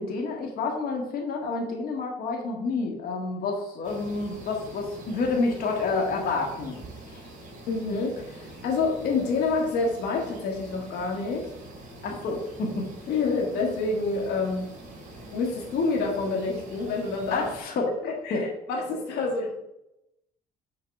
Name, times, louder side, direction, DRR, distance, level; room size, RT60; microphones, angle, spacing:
voice 1, 0.0-6.8 7.1-7.2 12.0-12.9 17.3-17.9 18.3-18.4, left 3 dB, 60° left, 1 dB, 1.7 m, -29 dB
sound 1, 3.8-17.6, right 1 dB, 45° right, 3.1 m, -45 dB
voice 2, 7.7-11.5 13.1-14.7 15.3-17.5 17.8-19.5, left 3 dB, 80° left, 0 dB, 1.8 m, -28 dB
6.7 x 4.1 x 5.9 m, 0.85 s
cardioid pair, 110°, 17 cm